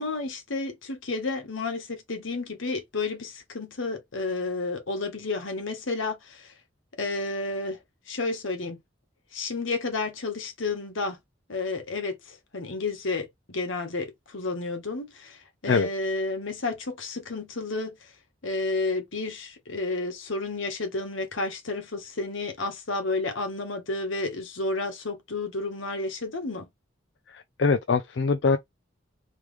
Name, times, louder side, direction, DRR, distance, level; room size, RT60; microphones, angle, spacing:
voice 1, 0.0-6.5 7.0-7.8 8.1-8.8 9.3-11.2 11.5-18.1 18.4-26.7, left 3 dB, 80° left, 1.2 m, -31 dB
voice 2, 27.3-28.6, left 4 dB, 60° left, 0.4 m, -23 dB
3.5 x 3.0 x 3.3 m
head